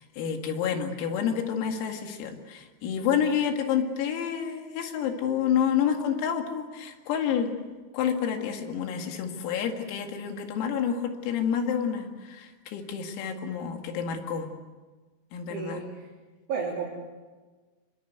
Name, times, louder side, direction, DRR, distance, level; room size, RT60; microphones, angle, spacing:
voice 1, 0.0-7.5 7.9-14.5 15.3-15.8, left 8 dB, 85° left, 4 dB, 4.9 m, -29 dB
voice 2, 15.5-16.1 16.5-16.9, right 5 dB, 55° right, -3 dB, 5.1 m, -32 dB
26.5 x 24.5 x 8.1 m, 1.3 s
omnidirectional pair, 6.0 m